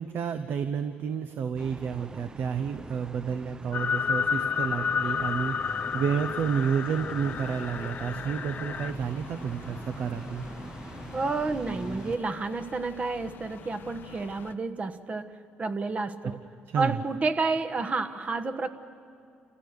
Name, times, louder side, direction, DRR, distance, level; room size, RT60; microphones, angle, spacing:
voice 1, 0.0-10.4 16.7-17.0, right 7 dB, 60° right, 9 dB, 0.9 m, -30 dB
sound 1, 1.6-12.2, right 2 dB, 20° right, 0.5 m, -42 dB
sound 2, 3.7-8.9, left 7 dB, 45° left, 0.4 m, -31 dB
sound 3, 7.2-14.6, left 8 dB, 60° left, 0.8 m, -47 dB
voice 2, 11.1-15.3 15.6-16.4 16.8-18.7, right 3 dB, 35° right, 7 dB, 1.2 m, -30 dB
28.5 x 15.5 x 6.7 m, 2.5 s
supercardioid pair, 65°, 4 cm